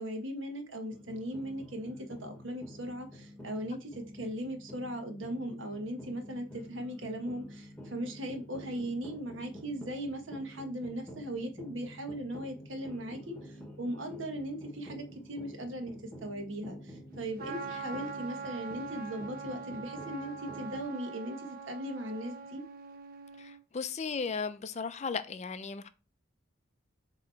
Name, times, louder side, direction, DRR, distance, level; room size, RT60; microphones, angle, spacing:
voice 1, 0.0-15.9 16.2-22.6, right 1 dB, 70° right, 1.3 m, -38 dB
sound 1, 0.9-20.8, equal, 5° left, 1.1 m, -49 dB
Trumpet, 17.4-23.6, right 5 dB, 45° right, 0.9 m, -43 dB
voice 2, 23.4-25.9, left 5 dB, 35° left, 0.4 m, -36 dB
7.3 x 3.0 x 4.4 m
head